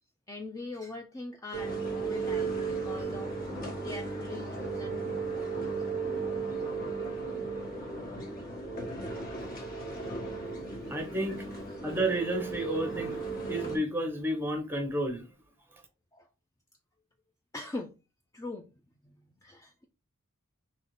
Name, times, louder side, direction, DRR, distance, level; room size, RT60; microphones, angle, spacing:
voice 1, 0.3-3.3 3.8-5.0 5.4-5.8 9.6-9.7 16.1-16.3 17.5-17.9 18.3-18.7 19.0-19.8, left 2 dB, 15° left, 0.3 m, -42 dB
sound 1, 1.5-13.8, right 4 dB, 40° left, 1.3 m, -35 dB
voice 2, 10.9-11.4 11.8-13.2 13.5-15.3, right 1 dB, 10° right, 0.8 m, -31 dB
4.0 x 3.0 x 3.0 m
head